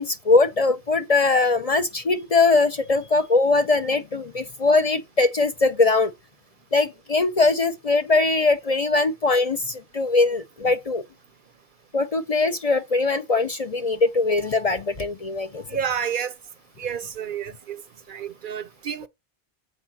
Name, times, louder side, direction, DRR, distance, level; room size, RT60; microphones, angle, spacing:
voice 1, 0.0-6.1 6.7-11.0 11.9-15.6, left 3 dB, 40° left, 0.6 m, -21 dB
voice 2, 15.7-16.3 16.8-17.8 18.1-19.1, right 8 dB, 60° right, 0.7 m, -29 dB
7.5 x 4.7 x 5.8 m
omnidirectional pair, 1.1 m